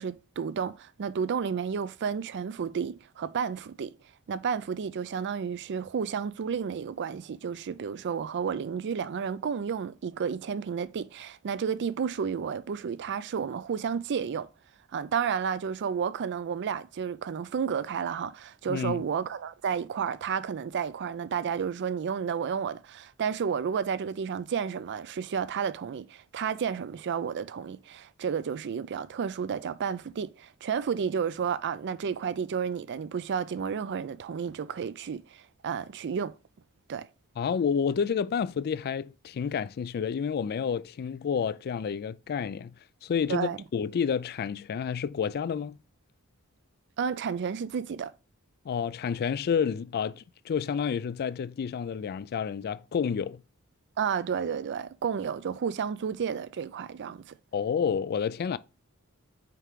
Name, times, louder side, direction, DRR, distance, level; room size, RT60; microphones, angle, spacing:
voice 1, 0.0-3.9 4.3-14.5 14.9-36.3 36.9-37.1 43.3-43.6 47.0-48.1 54.0-57.4, right 7 dB, 50° right, 0.4 m, -31 dB
voice 2, 18.7-19.0 37.4-42.7 43.0-45.8 48.6-53.4 57.5-58.6, left 7 dB, 45° left, 0.3 m, -29 dB
5.7 x 4.7 x 3.6 m
head